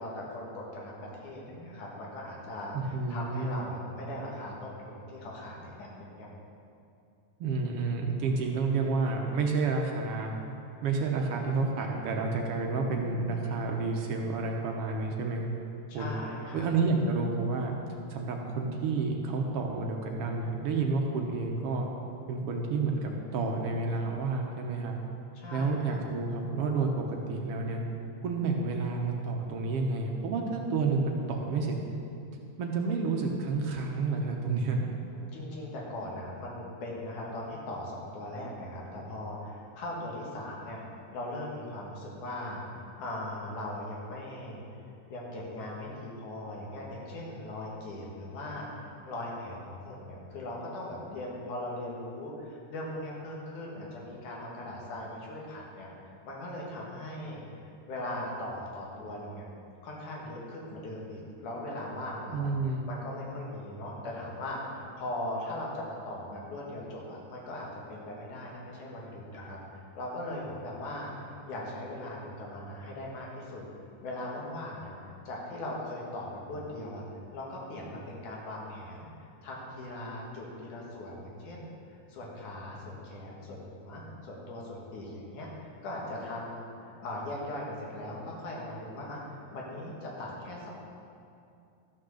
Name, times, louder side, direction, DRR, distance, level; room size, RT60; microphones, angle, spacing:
voice 1, 0.0-6.3 15.9-16.7 25.3-26.0 35.1-40.8 41.1-44.6 45.1-55.9 56.2-59.5 59.8-62.5 62.9-73.6 74.0-74.9 75.2-77.0 77.3-81.7 82.1-90.7, left 1 dB, 75° left, -3 dB, 3.3 m, -39 dB
voice 2, 2.7-3.7 7.4-10.3 10.8-15.5 15.9-16.1 16.5-17.7 18.1-21.9 22.3-25.0 25.5-27.8 28.2-31.8 32.6-34.9 62.3-62.9, right 3 dB, 65° right, 1 dB, 1.5 m, -30 dB
13.0 x 6.4 x 6.4 m, 2.5 s
omnidirectional pair, 3.6 m